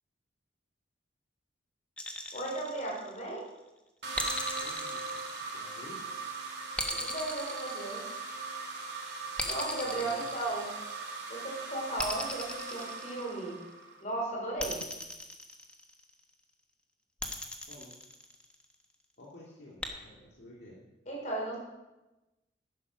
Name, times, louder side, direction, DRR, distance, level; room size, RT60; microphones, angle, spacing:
sound 1, 2.0-3.4 4.2-6.0 6.8-8.5 9.4-11.1 12.0-13.6 14.6-16.1 17.2-18.7 19.8-19.9, left 1 dB, 5° left, 1.1 m, -38 dB
voice 1, 2.3-3.5 6.9-8.1 9.4-10.7 11.3-13.6 14.0-14.8 21.1-21.6, right 2 dB, 40° left, -2 dB, 4.5 m, -36 dB
sound 2, 4.0-14.0, right 4 dB, 65° right, 2.8 m, -40 dB
voice 2, 4.6-5.0 5.5-6.0 10.0-10.2 17.7-17.9 19.2-20.8, left 1 dB, 60° left, -5 dB, 2.3 m, -51 dB
10.5 x 10.0 x 6.1 m, 1.0 s
head